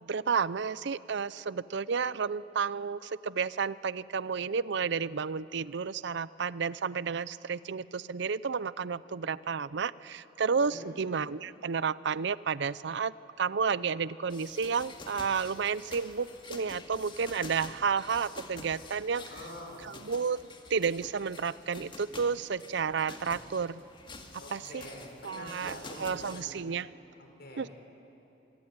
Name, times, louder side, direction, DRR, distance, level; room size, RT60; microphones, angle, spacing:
voice 1, 0.0-19.3 19.8-23.8 24.5-24.9 25.2-26.9 27.6-27.7, right 5 dB, 70° right, 18 dB, 0.6 m, -31 dB
voice 2, 10.5-11.0 19.2-19.9 24.4-26.6 27.2-27.6, left 1 dB, 60° left, 1 dB, 6.1 m, -46 dB
sound 1, 14.3-26.4, left 3 dB, 25° left, 2.2 m, -48 dB
27.0 x 23.0 x 9.6 m, 2.9 s
head